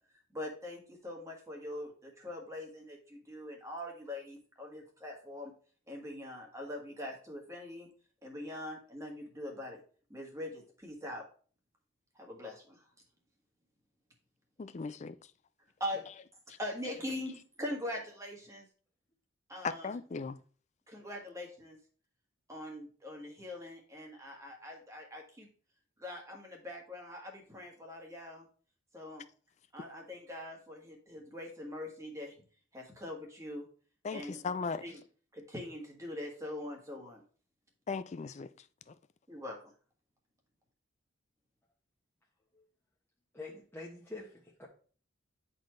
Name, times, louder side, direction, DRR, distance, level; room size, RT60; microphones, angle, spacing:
voice 1, 0.3-5.5 5.9-7.9 8.2-9.8 10.1-11.2 12.2-12.8 15.8-16.0 16.5-18.7 19.5-19.9 20.9-21.8 22.5-25.5 26.0-28.5 28.9-29.2 29.7-32.4 32.7-33.7 34.1-34.4 34.8-35.0 35.3-37.2 39.3-39.7, left 1 dB, 15° right, 1.6 m, -42 dB
voice 2, 14.6-15.2 16.5-16.6 19.6-20.4 34.0-34.8 37.9-38.5 38.9-39.0, left 5 dB, 35° left, 0.3 m, -37 dB
voice 3, 43.3-44.7, left 2 dB, 10° left, 1.0 m, -46 dB
9.8 x 4.3 x 3.2 m
head